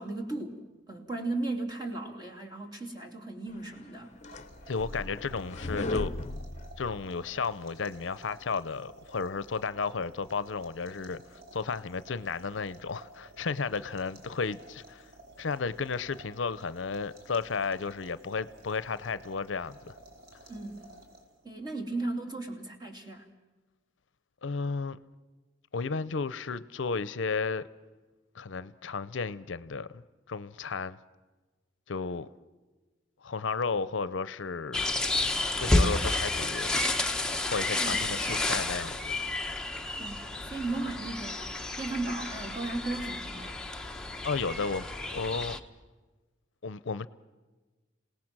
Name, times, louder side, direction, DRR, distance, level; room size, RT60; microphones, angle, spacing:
voice 1, 0.0-4.1 20.5-20.9 21.4-23.3 37.8-38.6 40.0-43.6, right 2 dB, 20° right, 2.9 m, -36 dB
Falltuer schlieszen, 3.8-7.4, left 2 dB, 35° left, 0.8 m, -37 dB
sound 1, 4.1-21.5, right 2 dB, 55° right, 4.1 m, -53 dB
voice 2, 4.7-6.1 6.8-15.1 15.4-20.0 24.4-25.0 25.7-27.6 28.3-31.0 31.9-32.3 33.2-34.9 35.6-36.8 37.4-39.2 44.2-45.6 46.6-47.1, left 4 dB, 70° left, 0.6 m, -33 dB
sound 2, 34.7-45.6, left 2 dB, 5° left, 0.9 m, -31 dB
27.5 x 18.0 x 6.1 m
head